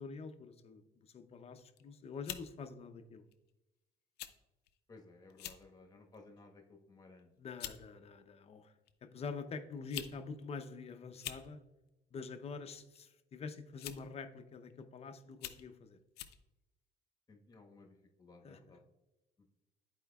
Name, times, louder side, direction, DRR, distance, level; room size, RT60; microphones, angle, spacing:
voice 1, 0.0-3.2 7.4-8.7 9.0-11.6 12.1-16.0 18.4-18.8, left 4 dB, 35° left, 8 dB, 0.7 m, -46 dB
sound 1, 1.6-1.8 2.2-2.5 3.3-3.5 4.2-4.3 4.7-4.8 5.3-5.6 6.1-6.4 7.2-7.3 7.6-7.8 8.9-9.0 9.7-10.2 10.4-10.5 11.1-11.5 12.7-13.0 13.8-14.1 14.7-14.8 15.3-15.7 16.2-16.4, left 12 dB, 80° left, 0.5 m, -45 dB
voice 2, 4.9-7.3 17.3-17.9 18.2-18.8, left 3 dB, 20° left, 2 dB, 1.3 m, -58 dB
12.0 x 4.4 x 2.3 m, 1.0 s
cardioid pair, 110°, 17 cm